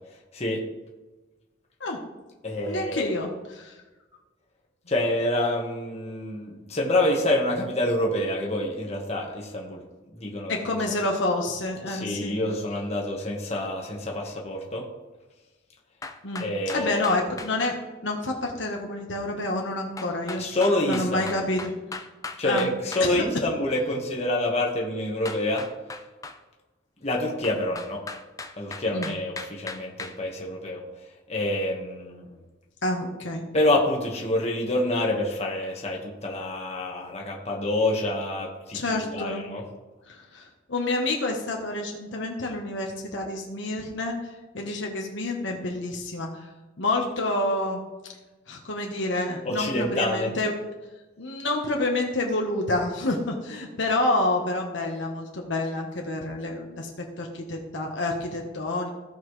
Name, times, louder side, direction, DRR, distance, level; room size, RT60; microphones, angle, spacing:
voice 1, 0.3-0.6 2.4-3.1 4.9-9.8 10.1-10.6 11.9-14.9 16.4-17.3 20.4-21.4 22.4-25.6 27.0-28.0 28.6-30.8 31.3-32.4 33.5-39.6 49.4-50.3, left 1 dB, 35° left, -1 dB, 1.5 m, -27 dB
voice 2, 2.6-3.8 10.5-12.4 16.2-16.4 16.7-17.8 18.0-20.4 20.8-21.7 22.4-22.7 23.0-23.2 28.9-29.1 32.8-33.5 38.7-39.5 40.1-44.3 44.5-46.5 46.8-47.8 48.5-50.5 51.2-58.9, left 2 dB, 65° left, 1 dB, 1.3 m, -28 dB
sound 1, 16.0-17.5 20.0-23.1 25.3-26.4 27.4-30.2, left 3 dB, 15° left, 0.5 m, -38 dB
16.0 x 5.6 x 3.2 m, 1.2 s
head